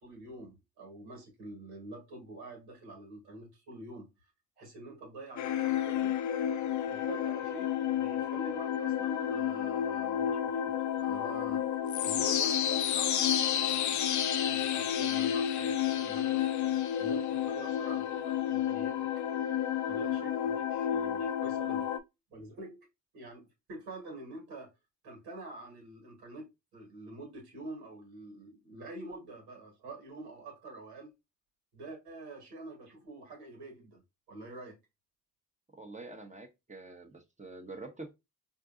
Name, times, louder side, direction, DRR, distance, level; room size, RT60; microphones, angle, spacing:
voice 1, 0.0-4.3 4.6-6.1 6.8-11.6 12.0-13.3 13.6-16.5 17.0-19.1 19.9-21.9 22.3-22.9 23.1-24.7 25.0-31.1 31.7-34.0 34.3-34.8, right 2 dB, 80° right, 1.6 m, -46 dB
sound 1, 5.4-22.0, left 10 dB, 45° left, 0.5 m, -31 dB
voice 2, 35.7-38.1, right 2 dB, 20° right, 0.9 m, -46 dB
4.4 x 2.6 x 2.5 m
hypercardioid pair, 45°, 39 cm